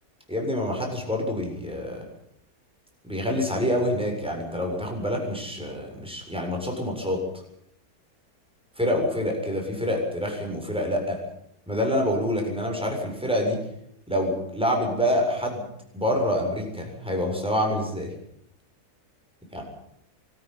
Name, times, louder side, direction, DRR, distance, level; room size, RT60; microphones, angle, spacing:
voice 1, 0.3-2.0 3.0-7.2 8.8-11.2 11.7-13.6 14.1-15.6 15.9-18.1 19.5-19.6, equal, 5° right, 1 dB, 7.3 m, -26 dB
24.5 x 14.5 x 9.9 m, 0.74 s
omnidirectional pair, 1.7 m